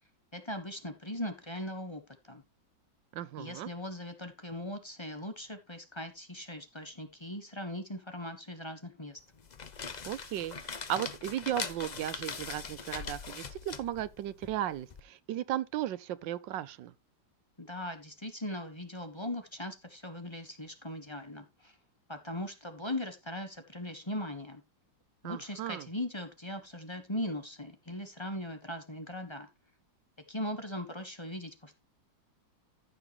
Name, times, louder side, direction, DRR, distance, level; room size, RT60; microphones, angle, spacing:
voice 1, 0.3-2.4 3.4-9.2 17.6-21.7 22.1-24.6 25.2-29.5 30.3-31.8, left 1 dB, 15° left, 1.3 m, -39 dB
voice 2, 3.1-3.7 10.1-16.9 25.2-25.9, right 12 dB, 75° right, 1.4 m, -36 dB
sound 1, 9.3-15.0, left 5 dB, 45° left, 0.5 m, -41 dB
15.0 x 6.0 x 3.1 m
omnidirectional pair, 2.0 m